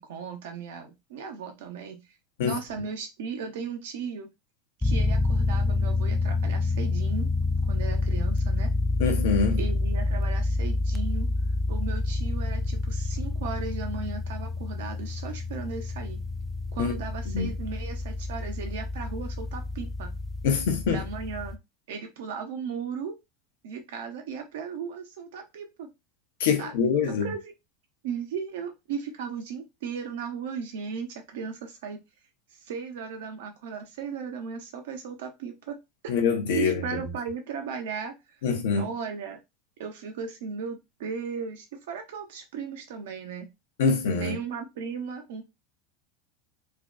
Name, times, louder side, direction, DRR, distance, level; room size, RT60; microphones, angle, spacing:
voice 1, 0.0-2.0 2.4-4.3 4.8-7.3 7.7-8.7 9.6-11.3 11.7-16.2 16.7-20.2 20.9-21.6 21.9-23.2 23.6-25.9 26.6-27.5 28.0-32.0 32.6-35.8 36.0-36.1 36.6-38.1 38.7-39.4 39.8-43.5 44.2-45.4, right 6 dB, 70° right, 0.7 m, -36 dB
sound 1, 4.8-21.5, left 2 dB, 5° left, 0.3 m, -28 dB
voice 2, 9.0-9.6 16.8-16.9 17.3-17.5 20.4-21.0 26.4-27.3 36.1-36.8 38.4-38.8 43.8-44.4, left 5 dB, 70° left, 0.6 m, -24 dB
2.5 x 2.1 x 2.4 m
hypercardioid pair, 85°, 0 cm